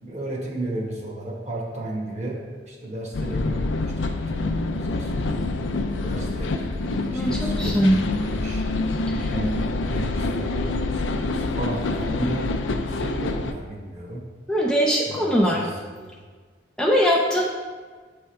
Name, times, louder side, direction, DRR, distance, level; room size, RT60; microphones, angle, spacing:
voice 1, 0.0-5.3 6.0-8.6 9.3-9.5 9.9-14.2 15.1-16.1, right 1 dB, 40° right, -2 dB, 1.2 m, -34 dB
sound 1, 3.1-13.5, left 2 dB, 90° left, 0.5 m, -26 dB
voice 2, 7.1-8.0 9.2-9.3 14.5-15.7 16.8-17.4, equal, 5° left, -2 dB, 0.4 m, -21 dB
7.4 x 3.5 x 4.4 m, 1.5 s
head